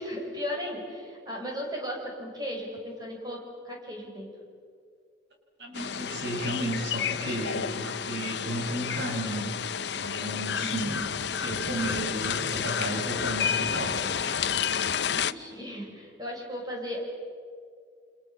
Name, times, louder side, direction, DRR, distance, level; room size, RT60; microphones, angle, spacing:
voice 1, 0.0-3.4 3.6-4.3 10.6-10.9 15.0-17.0, equal, 20° right, -1 dB, 6.6 m, -36 dB
voice 2, 5.6-9.5 9.9-14.0, right 1 dB, 60° right, 1 dB, 6.6 m, -33 dB
sound 1, 5.7-15.3, left 7 dB, 60° left, 0.7 m, -30 dB
29.5 x 27.0 x 7.4 m, 2.3 s
head